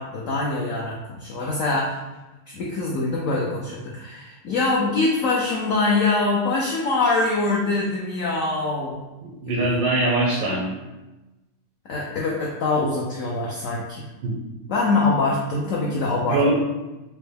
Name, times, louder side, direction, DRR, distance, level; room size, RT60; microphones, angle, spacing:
voice 1, 0.0-2.0 2.5-9.0 9.5-9.7 11.9-14.0 14.7-16.4, left 3 dB, 75° left, -4 dB, 0.7 m, -24 dB
voice 2, 9.2-10.7 14.2-14.4 16.3-16.5, right 2 dB, 85° right, -4 dB, 1.4 m, -22 dB
4.5 x 2.1 x 3.3 m, 1.1 s
omnidirectional pair, 2.0 m